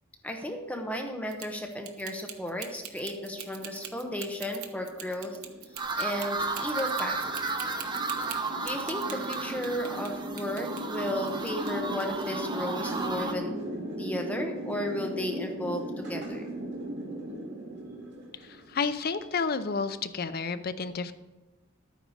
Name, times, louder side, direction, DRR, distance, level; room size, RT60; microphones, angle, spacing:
voice 1, 0.2-5.4 6.0-7.3 8.6-13.6 14.0-16.5, left 1 dB, 5° left, 2 dB, 0.9 m, -34 dB
sound 1, 1.3-10.1 10.4-11.7 12.0-12.2, right 9 dB, 90° right, 1.2 m, -43 dB
sound 2, 2.8-19.1, right 1 dB, 55° right, 2.3 m, -38 dB
sound 3, 5.8-13.3, right 3 dB, 20° right, 0.7 m, -34 dB
voice 2, 18.3-21.1, left 5 dB, 45° left, 11 dB, 0.6 m, -31 dB
12.0 x 9.1 x 4.9 m, 1.1 s
head